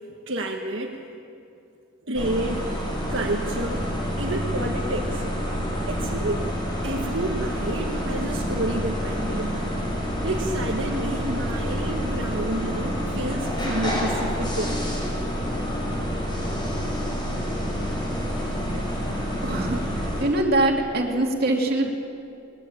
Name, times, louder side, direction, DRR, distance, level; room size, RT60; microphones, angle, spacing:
voice 1, 0.3-1.0 2.0-2.6 3.1-5.3 5.9-6.5 6.8-9.5 10.2-14.8, right 1 dB, 65° right, 0 dB, 1.6 m, -30 dB
sound 1, 2.1-20.2, equal, 20° left, 5.6 m, -28 dB
voice 2, 19.4-21.9, right 1 dB, 45° right, 0 dB, 2.8 m, -23 dB
21.0 x 20.5 x 8.9 m, 2.7 s
head